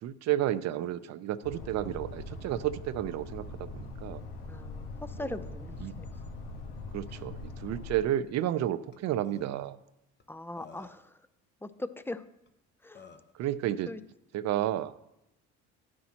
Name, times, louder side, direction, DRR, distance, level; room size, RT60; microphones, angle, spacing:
voice 1, 0.0-4.2 5.2-5.4 5.8-5.9 6.9-9.8 13.3-13.9 14.3-14.9, right 12 dB, 60° right, 15 dB, 0.6 m, -31 dB
sound 1, 1.4-8.0, left 3 dB, 90° left, 1.6 m, -42 dB
voice 2, 4.5-6.1 10.3-11.0 11.6-12.2 12.8-13.0 13.9-14.0, left 2 dB, 5° left, 12 dB, 0.5 m, -40 dB
Burping eructation, 8.9-9.0 9.2-9.4 10.2-10.3 10.6-11.1 12.5-12.6 12.9-13.3, left 5 dB, 35° left, 1.1 m, -51 dB
11.0 x 9.5 x 2.9 m, 0.86 s
supercardioid pair, 85°, 30 cm